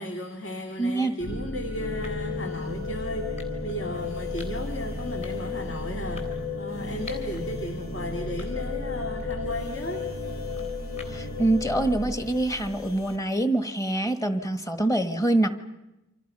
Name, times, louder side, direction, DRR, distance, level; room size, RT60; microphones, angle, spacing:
voice 1, 0.0-10.1, equal, 60° left, 3 dB, 2.2 m, -35 dB
sound 1, 0.7-1.0 2.0-2.4 3.4-3.8 4.4-4.7 5.2-5.6 6.2-7.4 7.9-8.0 8.4-8.9 9.2-11.4, left 3 dB, 30° left, 3.8 m, -48 dB
voice 2, 0.8-1.1 11.1-15.5, right 2 dB, 15° left, 8 dB, 1.5 m, -25 dB
sound 2, 1.2-13.2, left 3 dB, 75° left, 3.6 m, -33 dB
29.0 x 26.0 x 5.5 m, 0.94 s
head